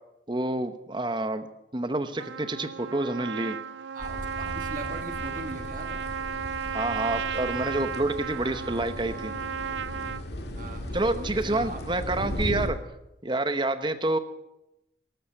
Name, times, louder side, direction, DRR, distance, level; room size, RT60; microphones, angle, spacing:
voice 1, 0.3-1.5 1.7-3.6 6.7-9.3 10.9-12.8 13.2-14.2, right 2 dB, 25° right, 10 dB, 0.9 m, -28 dB
Trumpet, 2.2-10.2, right 7 dB, 80° right, 0.5 m, -34 dB
voice 2, 3.9-6.0 10.5-11.9, right 2 dB, 45° right, 6 dB, 1.4 m, -40 dB
sound 1, 4.0-12.7, left 1 dB, 60° left, 2.1 m, -37 dB
13.0 x 13.0 x 6.7 m, 0.88 s
head